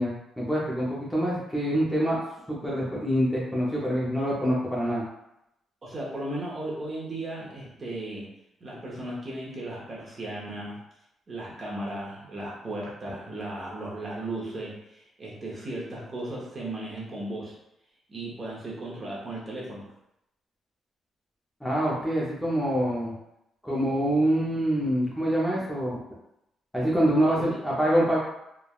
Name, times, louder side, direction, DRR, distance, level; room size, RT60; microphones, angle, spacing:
voice 1, 0.0-2.2 2.5-5.0 21.6-23.1 23.6-26.0 26.7-28.2, equal, 5° left, -6 dB, 0.6 m, -25 dB
voice 2, 5.8-8.3 8.6-10.8 11.3-17.5 18.1-19.9 27.3-27.6, right 1 dB, 30° right, -5 dB, 0.8 m, -36 dB
3.2 x 2.2 x 2.3 m, 0.83 s
cardioid pair, 140°, 0 cm